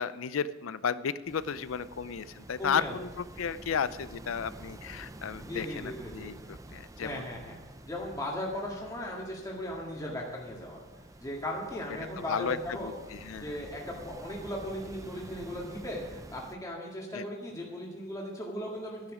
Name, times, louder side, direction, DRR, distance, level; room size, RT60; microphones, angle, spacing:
voice 1, 0.0-7.3 12.3-13.5 17.1-17.2, left 6 dB, 80° left, 16 dB, 0.5 m, -34 dB
sound 1, 1.2-16.6, right 1 dB, 15° right, 0.6 m, -49 dB
voice 2, 2.6-2.9 5.5-6.3 7.0-7.6 7.9-10.8 11.2-12.9 13.4-19.1, left 1 dB, 20° left, -3 dB, 1.9 m, -37 dB
13.0 x 10.5 x 5.0 m, 1.1 s
head